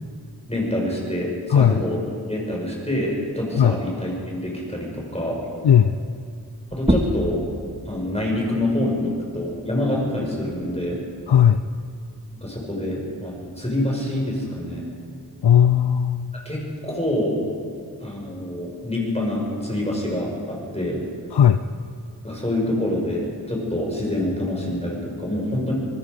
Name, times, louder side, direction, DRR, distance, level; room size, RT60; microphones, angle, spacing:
voice 1, 0.5-2.0 2.3-5.4 6.7-7.4 7.9-11.0 12.4-14.9 16.4-17.4 18.0-21.0 22.2-25.7, left 1 dB, 15° left, -2 dB, 5.8 m, -26 dB
voice 2, 5.6-6.0 11.3-11.6 15.4-16.3 21.3-21.6, left 9 dB, 80° left, 11 dB, 0.6 m, -16 dB
sound 1, 6.7-11.9, right 1 dB, 15° right, 1.9 m, -30 dB
24.5 x 20.0 x 5.3 m, 2.2 s
wide cardioid pair, 45°, 40 cm